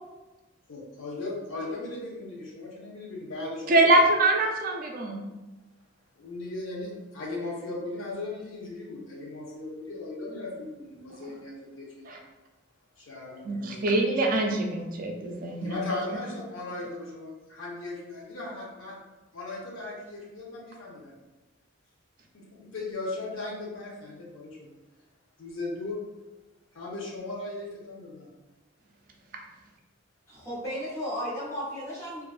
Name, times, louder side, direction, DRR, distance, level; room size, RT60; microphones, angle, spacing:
voice 1, 0.7-3.9 6.2-12.1 13.0-14.0 15.6-19.0 19.3-21.1 22.3-24.7 25.4-26.0 26.7-28.3, left 2 dB, 75° left, -3 dB, 0.6 m, -37 dB
voice 2, 3.7-5.2 12.1-12.2 13.4-15.8, right 2 dB, 45° right, 2 dB, 0.3 m, -24 dB
voice 3, 30.3-32.2, equal, 15° left, -8 dB, 0.7 m, -34 dB
2.4 x 2.2 x 2.4 m, 1.1 s
head